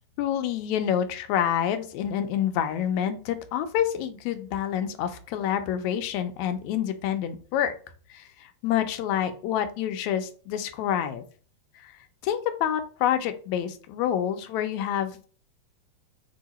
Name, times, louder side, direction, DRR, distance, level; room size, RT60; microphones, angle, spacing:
voice 1, 0.2-7.7 8.1-11.3 11.8-15.4, left 10 dB, 80° left, 9 dB, 1.9 m, -28 dB
4.3 x 2.8 x 4.1 m, 0.41 s
omnidirectional pair, 3.3 m